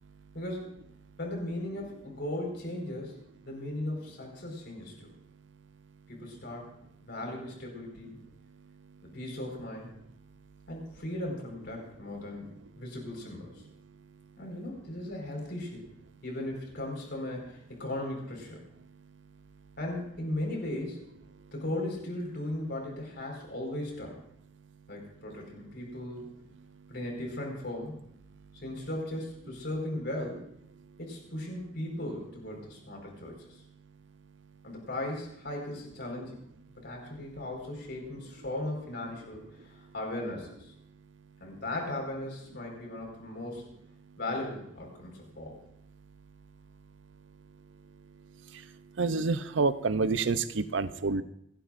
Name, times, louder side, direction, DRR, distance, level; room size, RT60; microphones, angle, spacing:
voice 1, 0.3-0.7 1.2-3.1 3.5-5.1 6.1-6.7 7.1-8.2 9.1-9.9 10.7-12.5 12.8-13.6 14.4-15.8 16.2-18.6 19.8-21.0 21.5-24.2 24.9-26.3 26.9-27.9 28.6-30.5 31.0-33.4 34.6-36.4 36.8-40.7 41.4-43.7 44.2-45.6, left 1 dB, 60° left, 1 dB, 4.8 m, -37 dB
voice 2, 49.0-51.2, right 4 dB, 75° right, 13 dB, 0.6 m, -28 dB
28.0 x 11.0 x 2.6 m, 0.74 s
head